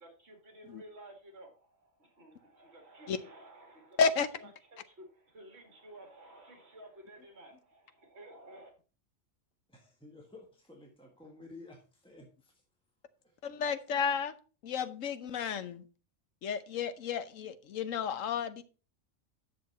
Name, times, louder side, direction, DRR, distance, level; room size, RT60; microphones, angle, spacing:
voice 1, 0.0-4.0 4.4-8.7, right 1 dB, 55° right, 2.4 m, -53 dB
voice 2, 9.7-12.5, left 2 dB, 5° left, 1.4 m, -53 dB
voice 3, 13.4-14.3 14.6-15.8 16.4-18.6, left 6 dB, 90° left, 1.2 m, -32 dB
9.6 x 6.7 x 4.2 m
omnidirectional pair, 1.3 m